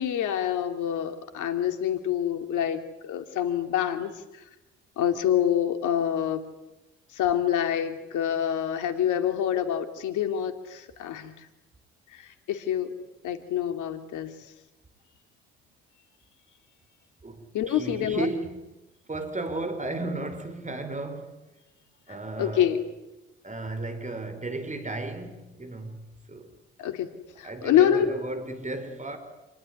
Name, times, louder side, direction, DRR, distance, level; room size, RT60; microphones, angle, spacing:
voice 1, 0.0-4.4 5.0-6.4 7.1-11.3 12.1-12.9 13.2-14.3 17.5-18.3 22.4-22.8 26.8-27.1 27.4-28.1, left 10 dB, 65° left, 2.9 m, -26 dB
voice 2, 17.2-18.7 19.1-21.4 22.1-22.7 23.4-26.5 27.4-29.2, right 2 dB, 25° right, 5.1 m, -34 dB
28.0 x 19.5 x 9.8 m
hypercardioid pair, 55°, 32 cm